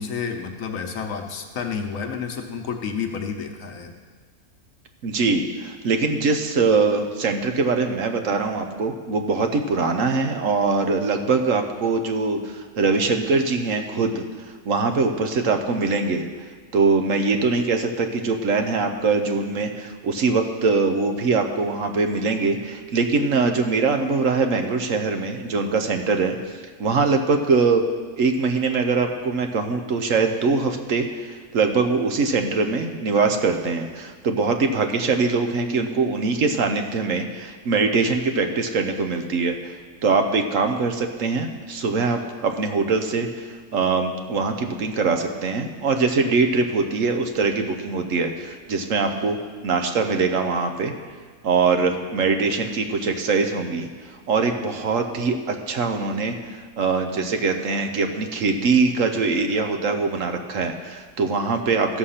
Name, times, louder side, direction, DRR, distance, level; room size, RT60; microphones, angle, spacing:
voice 1, 0.0-3.9, left 6 dB, 65° left, 4 dB, 1.2 m, -30 dB
voice 2, 5.0-14.2 14.6-16.2 16.7-27.8 28.2-39.7 40.0-49.4 49.6-50.9 51.4-53.9 54.3-62.0, right 4 dB, 60° right, 5 dB, 1.1 m, -22 dB
14.0 x 6.5 x 5.7 m, 1.5 s
omnidirectional pair, 1.6 m